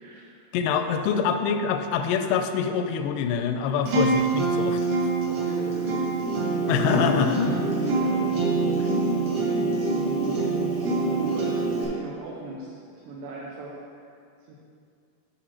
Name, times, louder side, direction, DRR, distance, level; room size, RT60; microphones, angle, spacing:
voice 1, 0.0-0.5 0.8-1.0 5.3-6.2 6.4-7.6 7.9-8.6 10.0-10.5 11.1-13.8 14.5-14.6, right 2 dB, 75° right, -4 dB, 2.7 m, -39 dB
voice 2, 0.5-5.1 6.7-7.6 8.8-8.9, left 7 dB, 85° left, 7 dB, 2.6 m, -25 dB
Acoustic guitar, 3.9-11.8, right 4 dB, 60° right, 2.2 m, -26 dB
sound 1, 6.2-11.9, right 1 dB, 35° right, 1.2 m, -31 dB
10.0 x 5.0 x 4.3 m, 2.3 s
omnidirectional pair, 4.7 m